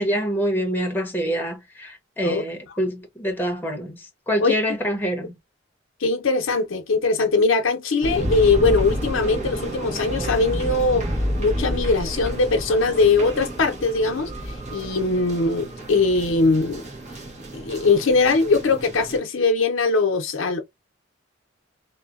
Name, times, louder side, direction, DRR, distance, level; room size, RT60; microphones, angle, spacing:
voice 1, 0.0-5.4, equal, 10° left, 0.8 m, -26 dB
voice 2, 6.0-11.1 11.4-14.3 14.7-16.8 17.5-20.6, left 3 dB, 85° left, 0.6 m, -21 dB
sound 1, 8.0-19.2, right 1 dB, 40° right, 1.0 m, -30 dB
2.7 x 2.1 x 2.3 m
head